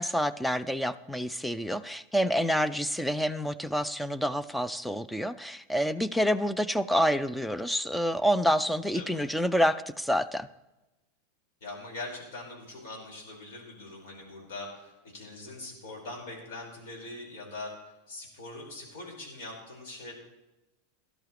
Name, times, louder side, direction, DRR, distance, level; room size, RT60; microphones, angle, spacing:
voice 1, 0.0-10.5, equal, 5° left, 14 dB, 0.5 m, -28 dB
voice 2, 8.9-9.3 11.6-17.7 18.1-20.1, left 2 dB, 60° left, -1 dB, 5.2 m, -42 dB
17.5 x 12.0 x 3.2 m, 1.0 s
hypercardioid pair, 90°, 0 cm